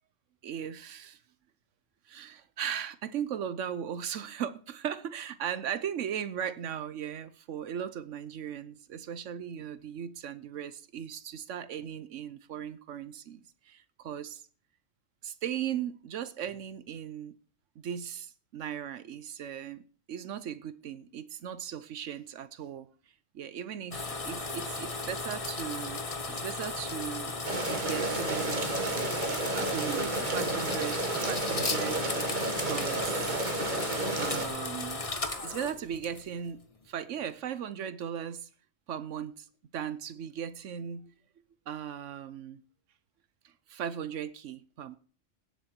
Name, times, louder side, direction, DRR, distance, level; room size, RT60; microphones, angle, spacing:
voice 1, 0.4-1.2 2.1-14.4 15.2-17.3 17.8-22.9 23.3-27.3 27.7-28.7 29.5-32.2 32.7-33.4 34.2-35.0 35.4-36.6 36.9-38.5 38.9-39.5 39.7-41.1 41.7-42.6 43.7-45.0, right 9 dB, 80° right, 1.1 m, -37 dB
sound 1, 23.9-36.5, left 3 dB, 30° left, 1.2 m, -36 dB
sound 2, 27.4-34.5, right 2 dB, 40° right, 1.8 m, -32 dB
17.5 x 8.0 x 4.4 m
omnidirectional pair, 1.3 m